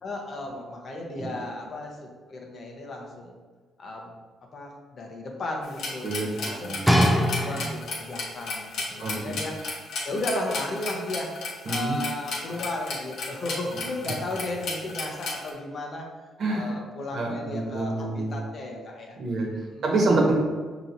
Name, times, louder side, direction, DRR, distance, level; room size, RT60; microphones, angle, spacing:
voice 1, 0.0-3.4 3.8-4.1 4.5-9.6 10.0-11.3 11.7-16.1 16.5-19.8, left 2 dB, 50° left, 0 dB, 0.8 m, -35 dB
sound 1, 5.6-15.5, left 3 dB, 70° left, 1.0 m, -33 dB
voice 2, 6.0-6.8 9.0-9.3 11.7-12.0 16.4-16.7 17.1-18.4 19.2-19.5 19.8-20.3, right 2 dB, 60° right, -1 dB, 1.1 m, -26 dB
sound 2, 6.9-8.1 8.9-9.0, equal, 5° right, 0.6 m, -22 dB
5.4 x 2.9 x 2.6 m, 1.4 s
cardioid pair, 90°, 0 cm